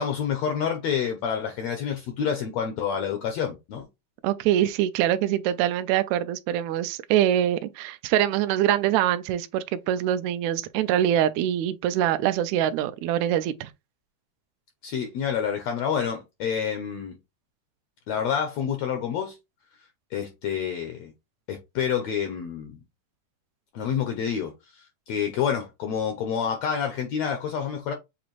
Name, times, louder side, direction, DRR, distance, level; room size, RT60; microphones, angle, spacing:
voice 1, 0.0-3.9 14.8-17.2 18.1-19.4 20.1-21.1 21.5-22.8 23.7-27.9, left 7 dB, 85° left, 1.5 m, -28 dB
voice 2, 4.2-13.7, right 11 dB, 85° right, 1.6 m, -24 dB
7.1 x 2.5 x 3.0 m
omnidirectional pair, 3.8 m